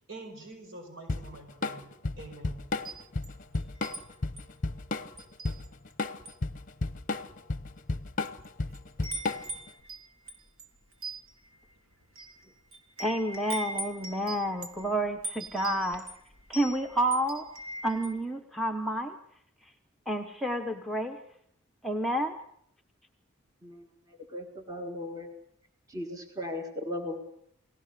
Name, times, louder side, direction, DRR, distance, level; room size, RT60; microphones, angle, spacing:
voice 1, 0.1-1.9 2.2-2.6, right 2 dB, 60° right, 5 dB, 5.2 m, -45 dB
Drum kit / Drum, 1.1-9.7, left 3 dB, 40° left, 0.8 m, -33 dB
Wind chime, 2.7-4.0 4.4-4.6 5.2-5.9 6.2-6.5 7.2-7.3 8.0-8.5 8.7-18.2, right 2 dB, 80° right, 3.5 m, -41 dB
voice 2, 13.0-16.0 16.5-17.4 17.8-19.1 20.1-21.2 21.8-22.3, right 1 dB, ahead, 3 dB, 0.9 m, -29 dB
voice 3, 24.3-25.3 25.9-27.2, left 1 dB, 15° right, 3 dB, 1.7 m, -37 dB
29.5 x 19.0 x 6.7 m, 0.72 s
head